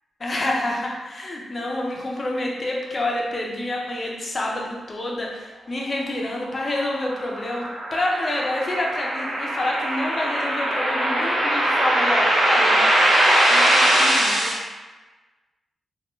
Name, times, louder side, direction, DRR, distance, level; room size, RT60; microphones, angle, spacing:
voice 1, 0.2-12.9 13.5-14.5, left 1 dB, 35° left, -2 dB, 0.5 m, -28 dB
sound 1, 6.7-14.5, right 1 dB, 70° right, 0.7 m, -21 dB
2.3 x 2.1 x 3.0 m, 1.2 s
cardioid pair, 100°, 0 cm